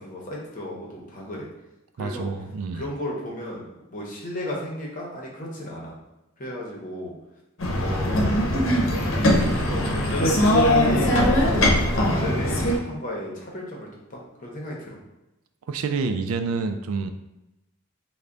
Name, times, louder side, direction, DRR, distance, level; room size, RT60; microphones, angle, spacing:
voice 1, 0.0-1.4 2.0-2.3 2.7-3.6 3.9-5.9 6.4-7.1 7.8-8.5 9.2-15.0, left 1 dB, 40° left, -3 dB, 0.8 m, -35 dB
voice 2, 2.0-2.8 15.7-17.1, right 4 dB, 90° right, 7 dB, 0.4 m, -28 dB
sound 1, 7.6-12.8, left 1 dB, 65° left, 0.7 m, -21 dB
3.4 x 2.2 x 3.8 m, 0.96 s
head